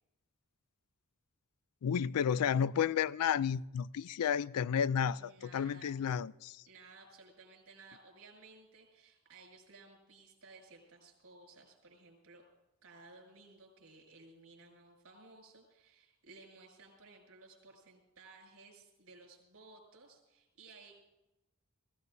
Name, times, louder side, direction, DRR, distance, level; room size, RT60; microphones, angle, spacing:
voice 1, 1.8-6.6, left 8 dB, 90° left, 0.4 m, -32 dB
voice 2, 5.1-6.1 6.7-12.4 12.8-20.9, right 3 dB, 70° right, 6.5 m, -57 dB
23.0 x 16.0 x 2.7 m
head